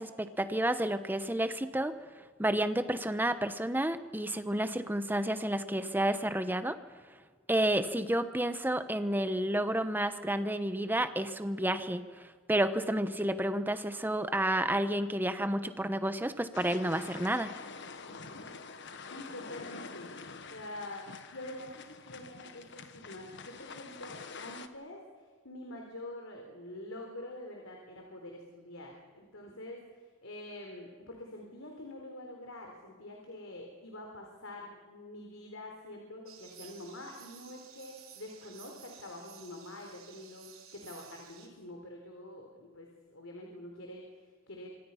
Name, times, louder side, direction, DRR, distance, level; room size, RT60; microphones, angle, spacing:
voice 1, 0.0-1.9 2.4-6.8 7.5-17.5, right 1 dB, 10° right, 10 dB, 1.1 m, -30 dB
sound 1, 16.5-24.7, left 4 dB, 60° left, 1.5 m, -46 dB
voice 2, 18.0-18.5 19.1-20.1 20.5-44.7, left 1 dB, 75° left, 1 dB, 4.0 m, -46 dB
sound 2, 36.3-41.5, right 9 dB, 80° right, 3.8 m, -54 dB
26.0 x 25.0 x 5.8 m, 1.5 s
head